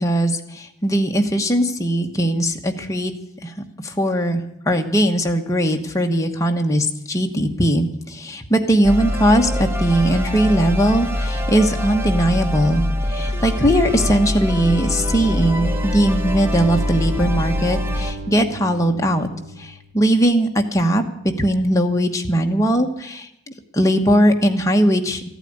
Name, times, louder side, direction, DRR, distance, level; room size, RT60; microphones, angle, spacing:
voice 1, 0.0-3.1 3.4-3.5 3.8-19.3 19.6-23.3 23.7-25.2, right 1 dB, 15° left, 2 dB, 1.2 m, -19 dB
sound 1, 8.8-18.1, left 1 dB, 10° right, 0.9 m, -24 dB
sound 2, 14.6-20.0, right 1 dB, 35° right, 2.4 m, -34 dB
14.0 x 9.1 x 9.5 m, 0.79 s
head